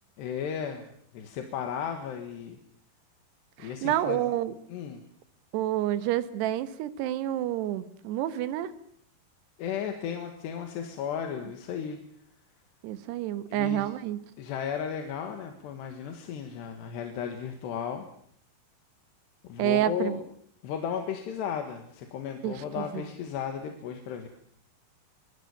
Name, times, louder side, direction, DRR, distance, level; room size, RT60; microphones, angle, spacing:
voice 1, 0.2-0.9 1.1-2.6 3.6-4.2 4.7-5.0 9.6-12.0 13.5-13.9 14.4-18.1 19.4-20.2 20.6-24.3, left 8 dB, 90° left, 5 dB, 3.8 m, -34 dB
voice 2, 3.6-4.5 5.5-8.7 12.8-14.2 19.6-20.2 22.4-23.1, right 13 dB, 80° right, 12 dB, 3.2 m, -29 dB
23.5 x 22.5 x 7.2 m, 0.68 s
omnidirectional pair, 4.8 m